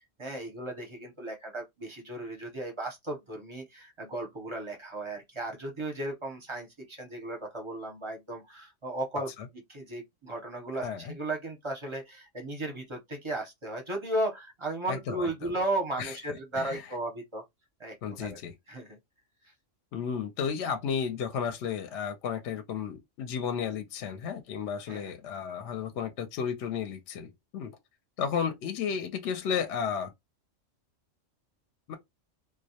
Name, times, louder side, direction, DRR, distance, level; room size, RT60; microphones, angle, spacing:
voice 1, 0.2-9.3 9.7-17.4 17.8-17.9 18.2-18.4 18.7-19.0 19.4-19.5 24.9-25.1, right 2 dB, 30° right, 0.5 m, -35 dB
voice 2, 10.8-11.1 14.9-15.5 16.0-16.2 16.6-16.8 18.0-18.5 19.9-27.7 28.2-30.1 31.9-32.0, left 7 dB, 70° left, 0.8 m, -33 dB
2.2 x 2.1 x 2.7 m
omnidirectional pair, 1.3 m